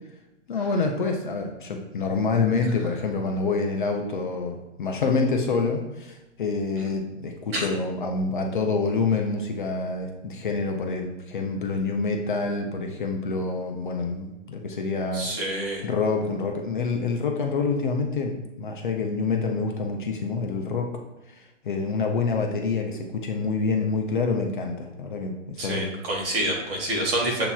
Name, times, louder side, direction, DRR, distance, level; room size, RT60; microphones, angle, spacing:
voice 1, 0.5-15.3 15.8-20.9 21.3-25.9, left 4 dB, 45° left, 2 dB, 0.4 m, -27 dB
voice 2, 15.1-15.8 25.6-27.5, right 1 dB, 50° right, -1 dB, 1.5 m, -27 dB
7.0 x 2.9 x 2.3 m, 0.98 s
hypercardioid pair, 165°, 37 cm